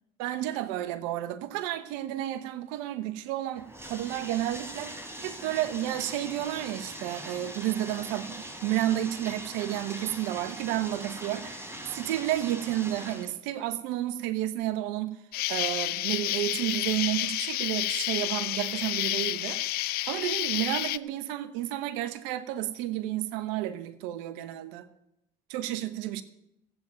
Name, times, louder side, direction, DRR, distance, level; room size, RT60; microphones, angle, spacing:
voice 1, 0.2-15.2 15.5-24.9 25.5-26.2, right 13 dB, 85° right, 1.0 m, -31 dB
Bathtub (filling or washing), 3.6-13.3, right 1 dB, 15° right, 3.4 m, -41 dB
Insect, 15.3-21.0, left 17 dB, 65° left, 0.5 m, -30 dB
15.0 x 9.0 x 9.0 m
supercardioid pair, 85°, 17 cm